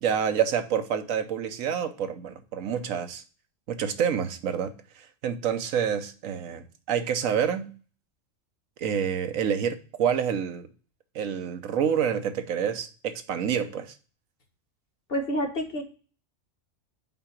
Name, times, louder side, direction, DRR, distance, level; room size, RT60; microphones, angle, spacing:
voice 1, 0.0-3.2 3.7-7.7 8.8-10.7 11.1-13.9, right 8 dB, 85° right, 9 dB, 1.2 m, -28 dB
voice 2, 15.1-15.8, equal, 45° left, 3 dB, 1.5 m, -28 dB
5.7 x 4.9 x 5.7 m, 0.39 s
omnidirectional pair, 1.4 m